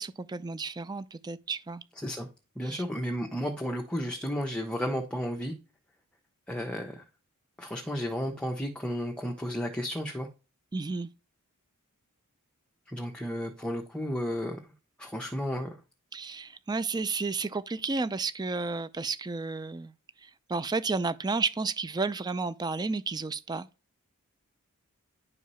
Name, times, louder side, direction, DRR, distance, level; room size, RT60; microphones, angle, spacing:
voice 1, 0.0-1.8 2.6-2.8 10.7-11.1 16.1-19.9 20.2-23.7, right 4 dB, 20° right, 0.4 m, -32 dB
voice 2, 2.6-5.5 6.5-7.0 7.6-10.3 12.9-14.6 15.0-15.8, equal, 5° left, 1.0 m, -33 dB
11.0 x 4.7 x 5.6 m
head